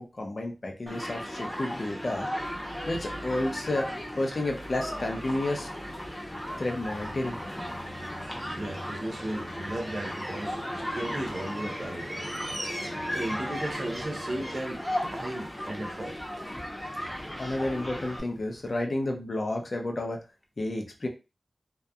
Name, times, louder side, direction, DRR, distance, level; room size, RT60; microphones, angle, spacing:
voice 1, 0.0-2.3 2.9-3.9 4.2-5.7 6.6-7.4 17.4-20.2 20.6-21.1, left 1 dB, 50° left, 0.6 m, -31 dB
Human group actions, 0.9-18.2, equal, 10° left, 0.7 m, -36 dB
sound 1, 2.3-18.8, equal, 25° right, 1.4 m, -46 dB
sound 2, 5.3-14.5, equal, 10° right, 1.0 m, -44 dB
voice 2, 8.5-12.2 13.1-14.8 15.1-16.2, right 1 dB, 50° right, 0.5 m, -35 dB
2.7 x 2.2 x 2.3 m
wide cardioid pair, 85°, 0 cm